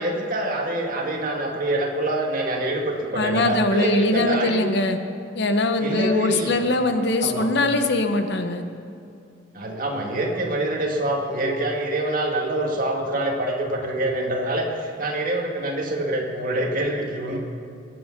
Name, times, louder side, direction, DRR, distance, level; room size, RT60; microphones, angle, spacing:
voice 1, 0.0-4.6 5.8-6.6 7.2-7.5 9.5-17.4, right 1 dB, 45° right, 0 dB, 2.1 m, -25 dB
voice 2, 3.1-5.0 5.3-8.6, left 2 dB, 55° left, 7 dB, 1.0 m, -22 dB
20.5 x 8.6 x 6.0 m, 2.5 s
head